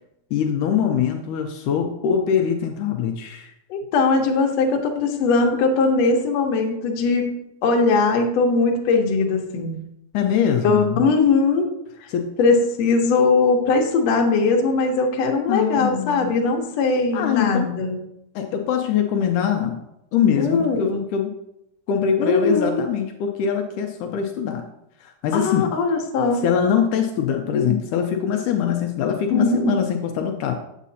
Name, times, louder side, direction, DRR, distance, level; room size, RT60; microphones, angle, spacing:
voice 1, 0.3-3.5 10.1-11.0 12.1-12.3 15.5-16.3 17.1-17.8 18.4-19.8 20.1-21.3 21.9-24.7 25.0-25.7 26.4-30.5, left 8 dB, 85° left, 4 dB, 1.8 m, -23 dB
voice 2, 3.7-7.3 7.6-9.8 10.6-11.7 12.4-18.0 20.4-21.0 22.2-22.8 25.3-26.4 29.3-29.7, left 4 dB, 65° left, 1 dB, 1.7 m, -20 dB
8.3 x 8.2 x 2.7 m, 0.81 s
omnidirectional pair, 4.2 m